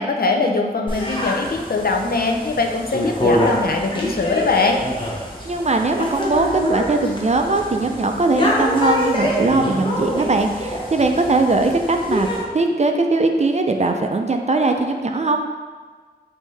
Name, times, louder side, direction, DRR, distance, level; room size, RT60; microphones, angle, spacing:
voice 1, 0.0-4.8, left 3 dB, 70° left, 3 dB, 0.5 m, -21 dB
sound 1, 0.9-12.4, equal, 30° left, 0.9 m, -25 dB
voice 2, 5.4-12.3 12.5-15.4, right 3 dB, 45° right, 4 dB, 0.4 m, -20 dB
5.3 x 2.7 x 3.2 m, 1.4 s
wide cardioid pair, 50°, 16 cm